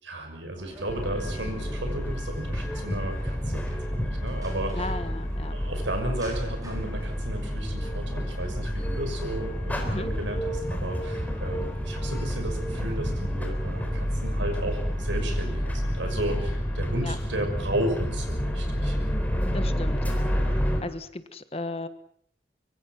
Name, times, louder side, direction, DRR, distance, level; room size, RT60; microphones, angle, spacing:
voice 1, 0.0-4.0 4.2-4.8 5.5-19.0, right 1 dB, 85° right, 5 dB, 6.3 m, -34 dB
sound 1, 0.5-16.4, equal, 20° right, 5.2 m, -47 dB
sound 2, 0.9-20.8, equal, 10° left, 3.8 m, -29 dB
voice 2, 4.7-5.5 9.8-10.1 17.0-17.2 19.5-21.9, left 2 dB, 30° left, 11 dB, 1.3 m, -36 dB
24.5 x 24.0 x 6.1 m, 0.66 s
head